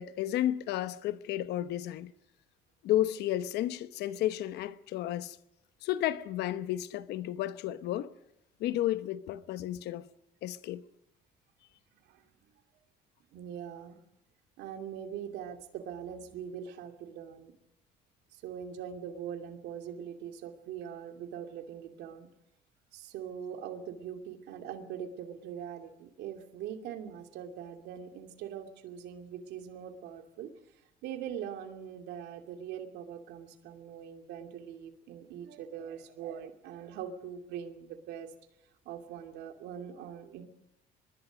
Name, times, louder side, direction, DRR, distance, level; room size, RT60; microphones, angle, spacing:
voice 1, 0.0-2.1 2.8-5.4 5.8-8.1 8.6-10.1 10.4-10.8, left 13 dB, 80° left, 1.0 m, -32 dB
voice 2, 13.3-14.0 14.6-17.5 18.3-22.3 22.9-30.5 31.0-38.3 38.8-40.4, right 8 dB, 85° right, 2.6 m, -42 dB
25.0 x 21.0 x 5.2 m
cardioid pair, 110°, 17 cm